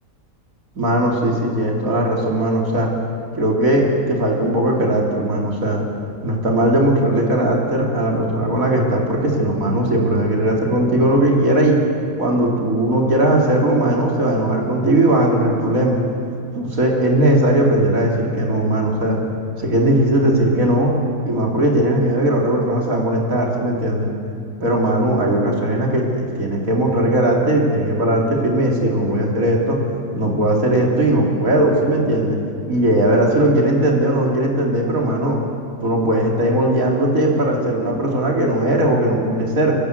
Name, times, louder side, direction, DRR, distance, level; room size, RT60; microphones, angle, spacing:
voice 1, 0.7-2.9 3.3-5.8 6.2-11.8 12.2-16.0 16.5-19.2 19.6-20.9 21.2-24.1 24.6-29.8 30.1-32.4 32.7-35.4 35.8-39.8, right 1 dB, 85° right, -1 dB, 3.5 m, -18 dB
30.0 x 12.0 x 7.9 m, 2.5 s
omnidirectional pair, 1.4 m